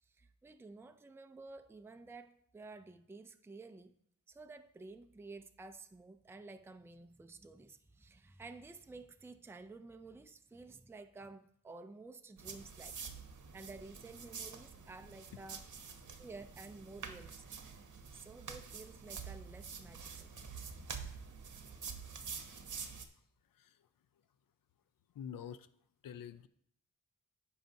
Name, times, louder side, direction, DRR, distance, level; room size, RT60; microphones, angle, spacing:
voice 1, 0.0-3.9 4.3-13.0 13.5-15.6 16.2-17.4 18.1-20.3, right 3 dB, 5° right, 8 dB, 0.4 m, -52 dB
sound 1, 12.4-23.0, right 6 dB, 60° right, 0.9 m, -47 dB
voice 2, 20.3-20.9 23.5-23.9 25.1-25.7 26.0-26.5, left 8 dB, 75° left, 13 dB, 0.5 m, -48 dB
14.5 x 5.7 x 2.7 m, 0.68 s
wide cardioid pair, 135°, 33 cm